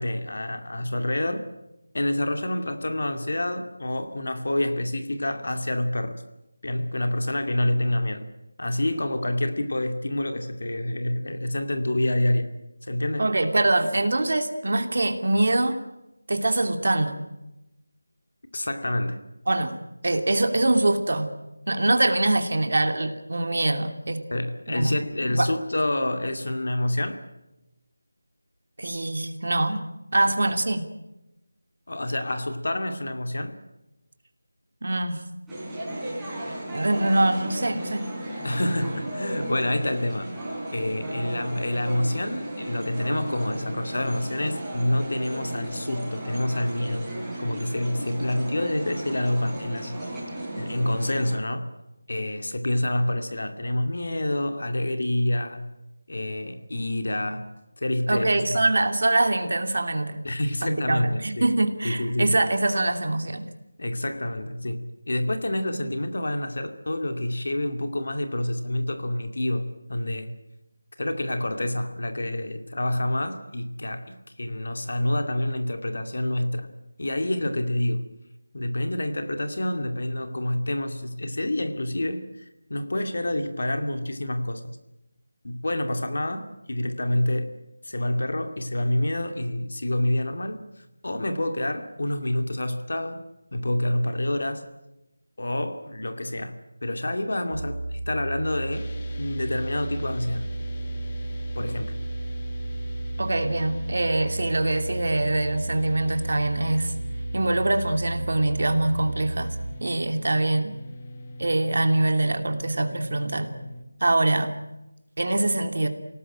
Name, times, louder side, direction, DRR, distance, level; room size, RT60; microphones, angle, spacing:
voice 1, 0.0-1.5 1.9-6.2 6.6-8.3 8.6-12.5 12.8-13.3 18.5-19.2 24.3-27.3 31.9-33.6 38.4-40.3 40.7-47.1 47.4-50.1 50.6-51.7 52.1-55.6 56.1-57.5 57.8-58.6 60.2-61.5 61.8-62.5 63.8-70.3 71.0-76.7 77.0-78.1 78.5-84.6 85.4-87.5 87.8-93.2 93.5-94.6 95.4-96.5 96.8-98.9 99.2-100.5 101.6-101.9, left 1 dB, 55° left, 7 dB, 2.3 m, -27 dB
voice 2, 13.2-15.8 16.3-17.2 19.5-21.3 21.7-24.2 24.7-25.0 25.3-25.5 28.8-29.8 30.1-30.9 34.8-35.2 36.7-38.0 58.1-60.2 60.6-63.4 103.2-106.9 107.3-109.5 109.8-110.8 111.4-113.5 114.0-114.5 115.2-115.9, right 2 dB, 50° right, 6 dB, 2.7 m, -24 dB
sound 1, 35.5-51.4, right 1 dB, 5° right, 4.4 m, -35 dB
sound 2, 97.5-109.7, right 2 dB, 25° right, 3.2 m, -33 dB
sound 3, 98.7-113.8, left 1 dB, 20° left, 1.8 m, -42 dB
28.0 x 18.5 x 9.0 m, 0.95 s
figure-of-eight pair, 175°, 0 cm